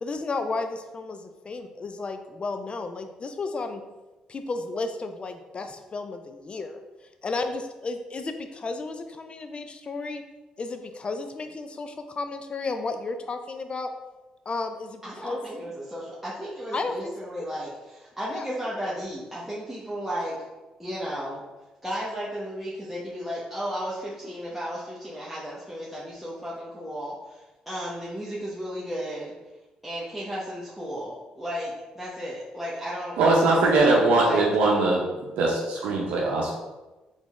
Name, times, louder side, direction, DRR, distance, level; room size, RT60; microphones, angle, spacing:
voice 1, 0.0-3.8 4.3-6.8 7.2-10.2 10.6-13.9 14.5-15.4 16.7-17.1 18.3-18.4, left 3 dB, 40° left, 8 dB, 0.5 m, -33 dB
voice 2, 15.0-20.4 20.8-21.4 21.8-29.3 29.8-33.2 34.2-34.4, equal, 5° right, -8 dB, 1.0 m, -34 dB
voice 3, 33.2-35.0 35.4-36.5, right 2 dB, 80° right, -3 dB, 0.6 m, -21 dB
4.0 x 3.5 x 3.1 m, 1.1 s
supercardioid pair, 65°, 3 cm